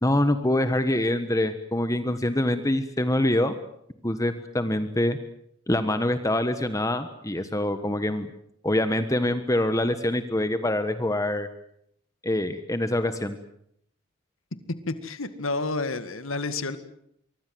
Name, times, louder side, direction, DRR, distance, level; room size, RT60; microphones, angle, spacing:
voice 1, 0.0-3.5 4.0-5.2 5.7-8.3 8.6-11.5 12.2-13.4, left 1 dB, 15° left, 10 dB, 1.3 m, -25 dB
voice 2, 14.9-16.8, left 3 dB, 70° left, 11 dB, 2.0 m, -30 dB
25.0 x 24.0 x 7.8 m, 0.72 s
head